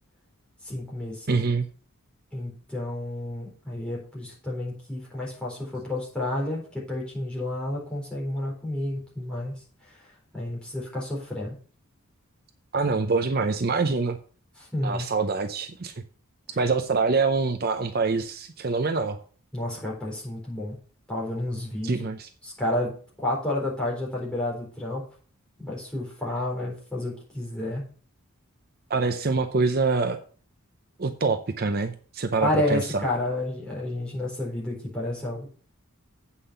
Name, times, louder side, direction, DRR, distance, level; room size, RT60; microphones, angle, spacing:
voice 1, 0.6-1.4 2.3-9.5 9.8-11.6 14.6-15.1 19.5-20.8 21.1-22.0 22.4-25.0 25.6-27.8 32.4-35.5, left 1 dB, 5° left, -4 dB, 4.0 m, -30 dB
voice 2, 1.3-1.7 12.7-14.2 14.8-15.9 16.6-19.2 21.8-22.3 28.9-30.2 31.0-33.0, right 4 dB, 45° right, 7 dB, 0.6 m, -25 dB
8.4 x 5.7 x 6.7 m, 0.42 s
head